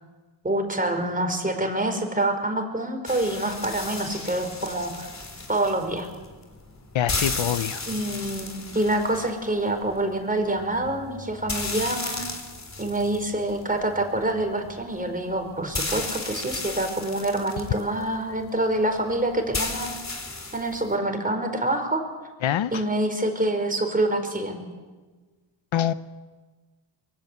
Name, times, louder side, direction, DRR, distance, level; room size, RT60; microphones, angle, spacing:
voice 1, 0.4-5.1 5.5-6.1 7.9-12.3 12.8-19.9 20.5-22.0 22.7-24.6, right 1 dB, 15° right, 5 dB, 4.9 m, -26 dB
sound 1, 3.1-20.9, left 3 dB, 35° left, 4.0 m, -35 dB
voice 2, 6.9-7.8 22.4-22.8 25.7-25.9, left 11 dB, 75° left, 14 dB, 0.9 m, -25 dB
24.5 x 22.0 x 8.3 m, 1.3 s
cardioid pair, 80°, 47 cm